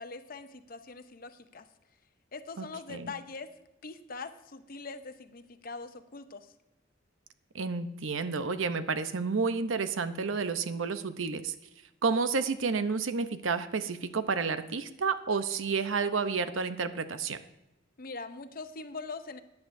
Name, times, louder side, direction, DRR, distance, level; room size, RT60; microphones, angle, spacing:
voice 1, 0.0-1.7 2.3-3.5 3.8-6.5 18.0-19.4, left 4 dB, 45° left, 10 dB, 0.7 m, -42 dB
voice 2, 2.6-3.1 7.5-11.5 12.0-17.4, right 4 dB, 85° right, 11 dB, 0.7 m, -30 dB
14.5 x 9.6 x 2.6 m, 0.96 s
head